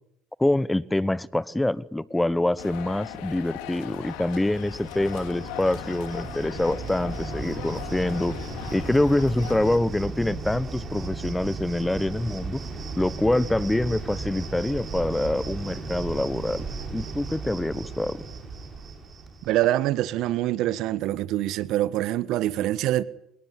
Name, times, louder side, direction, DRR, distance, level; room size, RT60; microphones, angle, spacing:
voice 1, 0.4-8.3 8.7-12.6 13.0-16.7 16.9-18.2, left 1 dB, 10° left, 1.0 m, -25 dB
sound 1, 2.6-9.8, left 13 dB, 75° left, 2.8 m, -39 dB
Cricket, 4.0-19.7, right 4 dB, 35° right, 7.5 m, -36 dB
sound 2, 6.2-16.0, left 3 dB, 25° left, 6.5 m, -47 dB
voice 2, 19.4-23.0, right 14 dB, 65° right, 1.3 m, -25 dB
26.0 x 21.0 x 9.7 m
hypercardioid pair, 80°, 0 cm